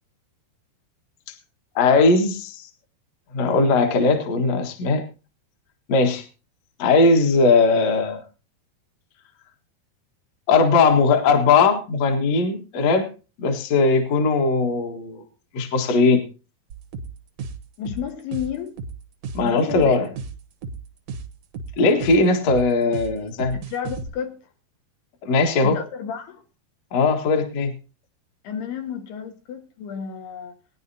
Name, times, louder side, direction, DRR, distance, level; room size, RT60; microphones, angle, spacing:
voice 1, 1.8-2.7 3.3-5.0 5.9-6.2 6.8-8.2 10.5-13.1 13.4-15.2 15.5-16.2 19.3-20.1 21.8-23.6 25.3-25.8 26.9-27.7, left 3 dB, 50° left, 2.3 m, -19 dB
sound 1, 16.7-24.1, right 4 dB, 65° right, 1.6 m, -34 dB
voice 2, 17.8-18.7 19.4-20.1 23.5-24.4 25.6-26.4 28.4-30.5, left 8 dB, 85° left, 3.6 m, -31 dB
20.5 x 10.5 x 2.8 m
omnidirectional pair, 4.6 m